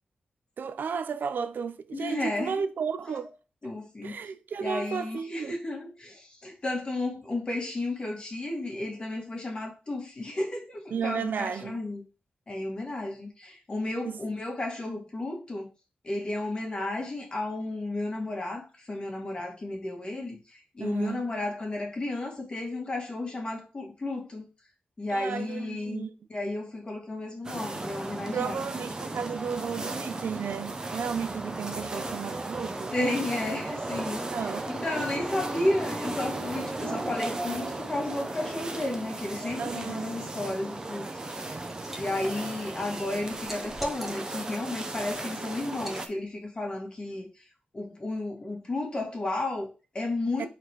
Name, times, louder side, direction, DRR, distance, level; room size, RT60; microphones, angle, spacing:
voice 1, 0.6-3.3 4.0-5.6 10.9-11.8 14.0-14.2 20.8-21.2 25.1-26.1 28.3-32.9 34.3-34.7 39.6-40.2 50.4-50.5, right 6 dB, 75° right, 0.6 m, -33 dB
voice 2, 1.9-2.7 3.6-4.2 4.6-12.0 12.5-15.7 16.0-24.5 25.0-26.0 26.3-28.7 32.9-41.6 41.9-47.4 47.7-50.5, left 2 dB, 30° left, 1.9 m, -33 dB
sound 1, 27.4-46.1, right 2 dB, 20° right, 0.8 m, -35 dB
Liquid, 41.2-42.0 42.4-44.5 45.0-45.2 45.7-46.0, equal, 5° right, 1.2 m, -40 dB
5.0 x 4.2 x 4.5 m
wide cardioid pair, 140°, 3 cm